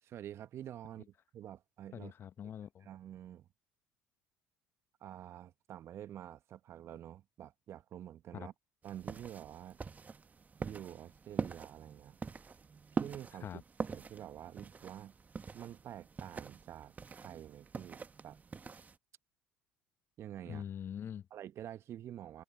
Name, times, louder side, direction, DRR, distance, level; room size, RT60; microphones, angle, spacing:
voice 1, 0.0-2.1 2.8-3.5 5.0-8.5 8.8-9.8 10.6-12.2 13.0-15.1 15.5-18.4 20.2-20.6 21.3-22.4, right 11 dB, 50° right, 1.4 m, -48 dB
voice 2, 1.9-2.9 8.3-8.5 13.4-13.6 20.5-21.3, left 9 dB, 45° left, 1.0 m, -43 dB
sound 1, 8.8-19.0, right 5 dB, 30° right, 1.4 m, -43 dB
hypercardioid pair, 60°, 6 cm